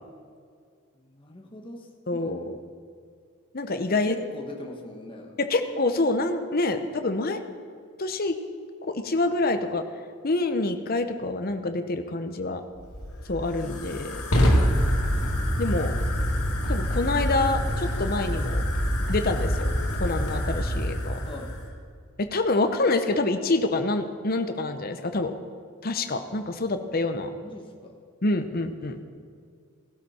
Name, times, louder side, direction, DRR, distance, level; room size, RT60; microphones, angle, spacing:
voice 1, 1.0-2.5 4.0-5.4 21.2-21.5 27.4-28.0, left 1 dB, 25° left, 2 dB, 1.3 m, -41 dB
voice 2, 2.1-2.6 3.5-4.2 5.4-7.4 8.0-8.4 8.9-9.8 10.2-12.6 13.3-14.2 15.6-15.9 16.7-18.7 19.1-21.2 22.2-25.4 25.8-27.3 28.2-29.0, left 2 dB, 45° left, 8 dB, 0.8 m, -26 dB
Fire, 12.7-21.7, equal, 85° left, 2.4 m, -26 dB
17.0 x 12.0 x 4.3 m, 2.2 s
head